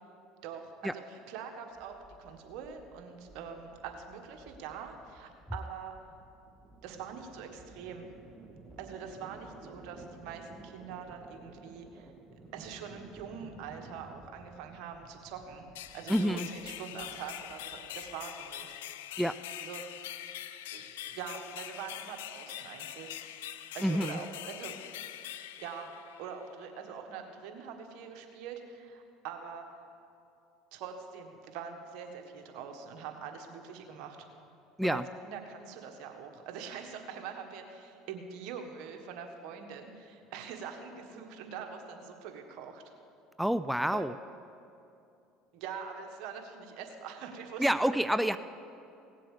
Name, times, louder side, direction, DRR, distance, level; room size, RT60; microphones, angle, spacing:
voice 1, 0.4-5.9 6.8-8.1 8.8-12.1 12.5-15.7 15.9-18.7 19.6-20.0 20.7-23.2 23.7-24.8 25.6-25.9 26.2-29.7 30.7-34.2 34.8-42.8 43.9-44.1 45.5-47.9 48.2-48.3, right 6 dB, 70° right, 4 dB, 1.5 m, -44 dB
sound 1, 1.7-18.7, right 3 dB, 20° right, 1.6 m, -54 dB
sound 2, 15.7-26.5, left 12 dB, 85° left, 0.5 m, -44 dB
voice 2, 16.1-16.5 19.2-19.4 23.8-24.2 34.8-35.0 43.4-44.1 47.6-48.4, equal, ahead, 12 dB, 0.3 m, -28 dB
17.5 x 7.5 x 6.7 m, 2.6 s
supercardioid pair, 90°, 0 cm